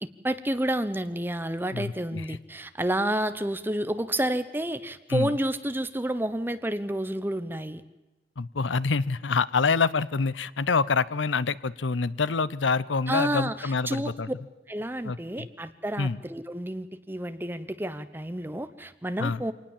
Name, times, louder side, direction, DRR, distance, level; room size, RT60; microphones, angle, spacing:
voice 1, 0.0-7.8 13.1-14.1 14.7-19.5, right 1 dB, 10° right, 12 dB, 0.9 m, -30 dB
voice 2, 1.7-2.4 5.1-5.3 8.4-14.3 15.0-15.5 16.0-16.2 19.2-19.4, left 4 dB, 90° left, 19 dB, 0.7 m, -26 dB
25.0 x 19.0 x 7.3 m, 1.1 s
head